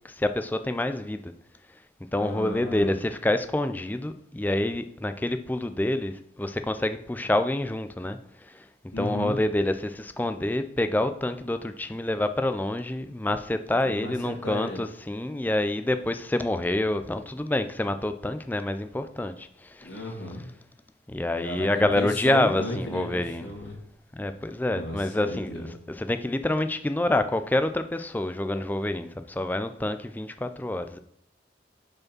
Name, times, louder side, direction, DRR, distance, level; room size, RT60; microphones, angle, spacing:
voice 1, 0.0-1.3 2.1-8.7 9.0-20.0 21.1-23.5 24.1-31.0, left 1 dB, 10° left, 0.3 m, -27 dB
voice 2, 2.2-2.9 8.9-9.4 13.8-14.8 19.8-20.4 21.4-23.8 24.7-25.7, left 1 dB, 85° left, 2.1 m, -35 dB
5.0 x 4.8 x 6.1 m
head